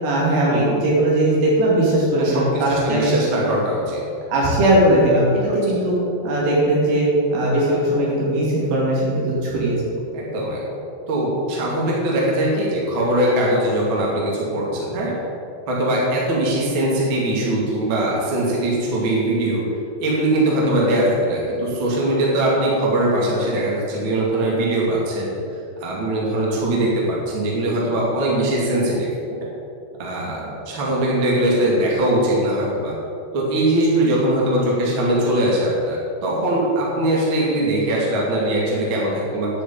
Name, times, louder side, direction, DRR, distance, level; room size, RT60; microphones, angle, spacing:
voice 1, 0.0-3.2 4.3-6.0 6.2-9.8, right 1 dB, 85° right, -6 dB, 5.8 m, -19 dB
voice 2, 2.2-4.0 5.5-5.6 10.1-15.1 15.7-19.6 20.0-25.3 25.8-29.1 30.0-32.9 33.3-39.5, right 1 dB, 35° right, -4 dB, 2.4 m, -21 dB
10.0 x 6.8 x 8.6 m, 2.6 s
omnidirectional pair, 5.4 m